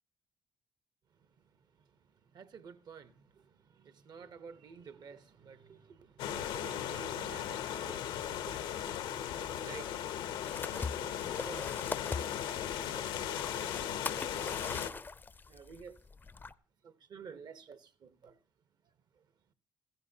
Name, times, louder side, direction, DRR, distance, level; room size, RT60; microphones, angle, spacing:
voice 1, 2.3-14.7 15.5-16.0 16.8-18.4 19.2-19.3, right 6 dB, 55° right, 1.0 m, -52 dB
sound 1, 6.2-14.9, left 10 dB, 85° left, 0.8 m, -37 dB
sound 2, 10.4-16.5, left 4 dB, 25° left, 0.5 m, -42 dB
15.0 x 14.5 x 2.8 m
cardioid pair, 85°, 8 cm